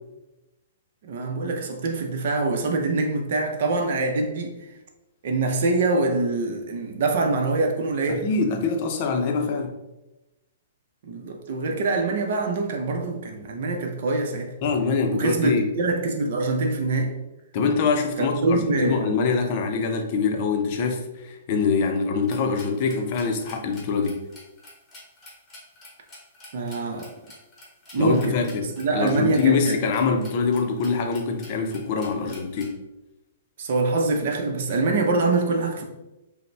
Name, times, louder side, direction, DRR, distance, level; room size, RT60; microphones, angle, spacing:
voice 1, 1.0-4.7 5.2-8.3 11.0-14.5 15.1-17.1 18.2-19.1 26.5-27.1 27.9-29.8 33.6-35.8, right 3 dB, 55° right, 0.6 m, -24 dB
voice 2, 8.1-9.8 14.6-15.6 17.5-24.2 28.0-28.7 28.9-32.8, left 5 dB, 40° left, 0.6 m, -24 dB
sound 1, 22.2-32.7, left 1 dB, 10° left, 1.2 m, -47 dB
5.1 x 2.1 x 3.3 m
hypercardioid pair, 155°, 0 cm